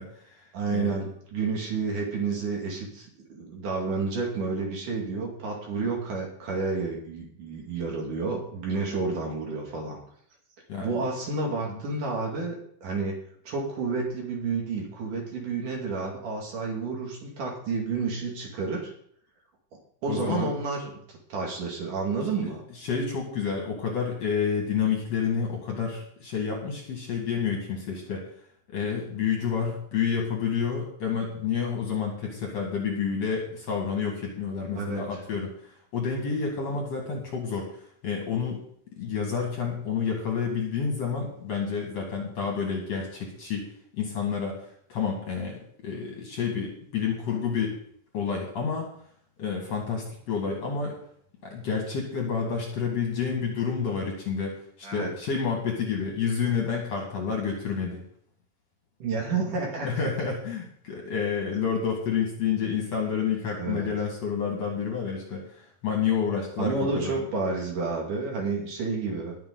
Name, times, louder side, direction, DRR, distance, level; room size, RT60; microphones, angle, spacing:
voice 1, 0.0-0.4 0.7-1.0 10.7-11.0 11.7-11.8 20.1-20.5 22.4-22.5 22.8-28.3 28.7-38.6 39.0-43.7 44.0-47.8 48.1-48.9 49.4-51.0 51.4-58.0 59.8-67.2, left 6 dB, 50° left, 0 dB, 2.6 m, -29 dB
voice 2, 0.5-10.0 10.8-12.6 12.8-13.2 13.5-18.9 20.0-22.6 34.7-35.0 54.8-55.1 59.0-60.1 63.6-63.9 66.6-69.4, right 4 dB, 55° right, -1 dB, 3.7 m, -30 dB
20.0 x 7.1 x 4.0 m, 0.64 s
omnidirectional pair, 4.6 m